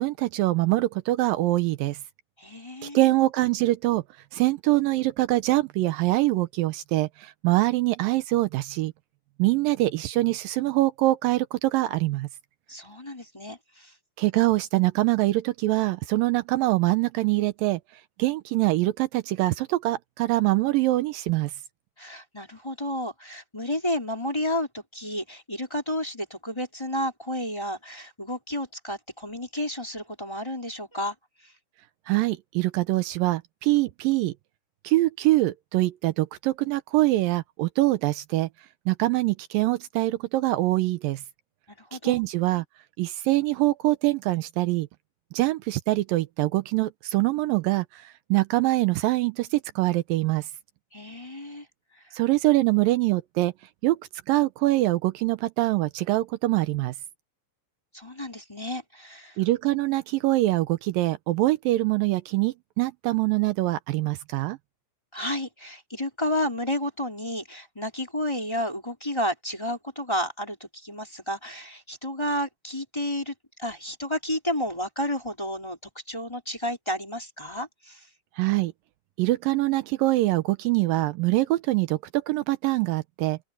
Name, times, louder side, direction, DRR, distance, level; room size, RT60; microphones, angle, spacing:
voice 1, 0.0-2.0 2.8-4.0 4.3-8.9 9.4-12.3 14.2-17.8 18.2-21.5 32.1-34.3 34.8-38.5 38.9-41.2 42.0-42.6 43.0-44.9 45.3-50.5 52.1-53.5 53.8-54.0 54.3-56.9 59.4-64.6 78.4-78.7 79.2-83.4, right 18 dB, 80° right, 2.3 m, -24 dB
voice 2, 2.4-3.1 12.7-13.9 22.0-31.1 41.7-42.2 50.9-51.7 57.9-59.4 65.1-75.8 76.1-78.1, left 1 dB, 5° left, 4.0 m, -31 dB
open air
omnidirectional pair, 4.2 m